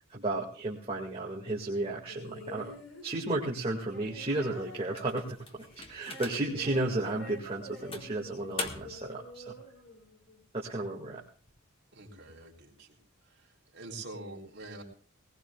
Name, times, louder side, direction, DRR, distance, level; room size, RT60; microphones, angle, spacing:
voice 1, 0.1-2.8 3.0-9.5 10.5-11.2, right 2 dB, 30° right, -3 dB, 2.1 m, -33 dB
sound 1, 2.1-10.5 11.5-11.6, equal, 85° left, 6.3 m, -48 dB
sound 2, 4.9-6.7 7.2-7.3 7.9-9.1, left 3 dB, 25° left, 1.7 m, -41 dB
voice 2, 11.9-13.0 13.4-13.5 13.7-14.8, right 2 dB, 55° right, -1 dB, 3.6 m, -45 dB
20.0 x 20.0 x 2.4 m, 0.43 s
head